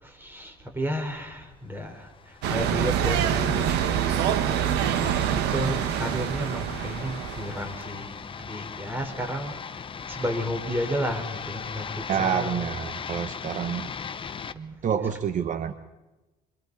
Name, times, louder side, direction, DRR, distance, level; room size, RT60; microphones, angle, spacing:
voice 1, 0.0-3.7 4.6-4.8 5.3-12.8 14.8-15.1, equal, 10° right, 3 dB, 4.5 m, -32 dB
sound 1, 2.0-14.5, left 6 dB, 30° left, 0.9 m, -39 dB
sound 2, 2.4-7.8, right 9 dB, 90° right, 1.5 m, -26 dB
voice 2, 12.1-13.9 14.5-15.7, right 8 dB, 50° right, 10 dB, 1.0 m, -28 dB
26.5 x 25.5 x 4.2 m, 1.1 s
cardioid pair, 110°, 17 cm